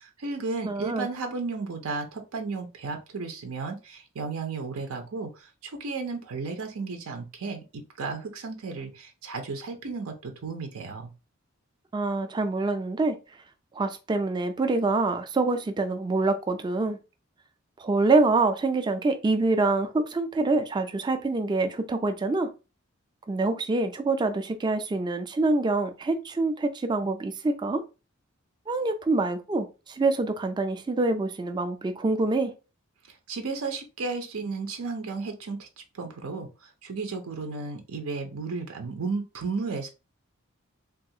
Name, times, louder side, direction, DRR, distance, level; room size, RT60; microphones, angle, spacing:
voice 1, 0.0-11.1 33.1-35.7 35.9-39.9, right 4 dB, 90° right, 0.6 m, -34 dB
voice 2, 0.7-1.1 11.9-13.2 13.7-17.0 17.8-22.5 23.3-27.8 28.7-32.5, right 3 dB, 20° right, 0.3 m, -26 dB
3.3 x 2.3 x 2.7 m
head